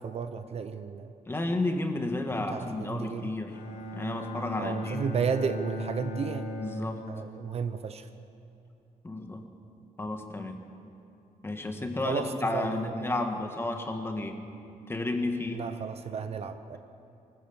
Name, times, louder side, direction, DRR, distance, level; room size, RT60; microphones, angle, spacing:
voice 1, 0.0-1.1 2.4-3.3 4.6-6.4 7.1-8.1 12.0-13.2 15.5-16.8, right 6 dB, 45° right, 9 dB, 0.8 m, -33 dB
voice 2, 1.3-3.6 3.9-5.0 6.6-7.0 9.0-9.4 10.0-10.6 11.4-14.4 14.9-15.6, left 2 dB, 15° left, 4 dB, 1.6 m, -32 dB
Bowed string instrument, 3.5-7.6, equal, 80° left, 4.1 m, -37 dB
24.0 x 15.0 x 7.2 m, 2.8 s
cardioid pair, 150°, 15 cm